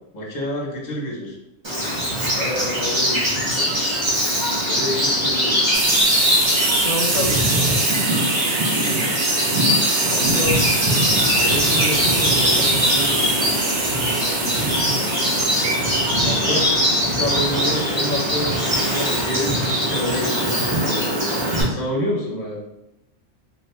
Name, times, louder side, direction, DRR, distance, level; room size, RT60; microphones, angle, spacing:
voice 1, 0.1-1.4 2.3-3.7 4.6-5.7 6.7-7.8 10.1-10.7 11.2-13.4 14.3-15.1 16.2-16.6 17.0-22.6, left 1 dB, 40° left, -3 dB, 0.8 m, -28 dB
Bird vocalization bird call bird song, 1.6-21.6, equal, 25° right, 0.7 m, -21 dB
sound 1, 5.7-16.2, right 4 dB, 85° right, 1.1 m, -25 dB
2.7 x 2.5 x 3.3 m, 0.88 s
omnidirectional pair, 1.3 m